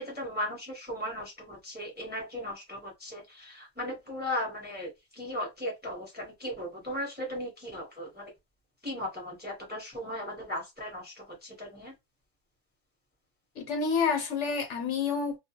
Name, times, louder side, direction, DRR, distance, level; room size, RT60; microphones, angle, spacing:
voice 1, 0.0-8.3 8.8-11.9, left 1 dB, 10° right, 0.7 m, -37 dB
voice 2, 13.6-15.4, left 5 dB, 70° left, 1.0 m, -28 dB
2.3 x 2.2 x 2.8 m
omnidirectional pair, 1.3 m